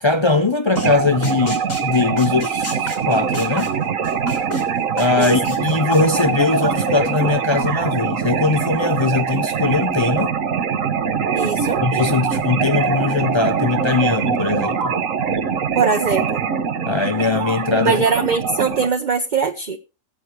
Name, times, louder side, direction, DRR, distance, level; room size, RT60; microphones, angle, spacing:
voice 1, 0.0-3.8 4.9-10.3 11.8-15.0 16.8-18.0, left 3 dB, 45° left, 0.3 m, -20 dB
sound 1, 0.8-0.9 1.2-4.6 5.0-7.3, left 2 dB, 70° left, 4.7 m, -29 dB
sound 2, 0.8-18.9, right 6 dB, 75° right, 1.4 m, -23 dB
voice 2, 11.3-11.8 15.7-16.4 17.8-19.8, right 5 dB, 40° right, 0.9 m, -21 dB
21.5 x 7.9 x 3.3 m
omnidirectional pair, 1.4 m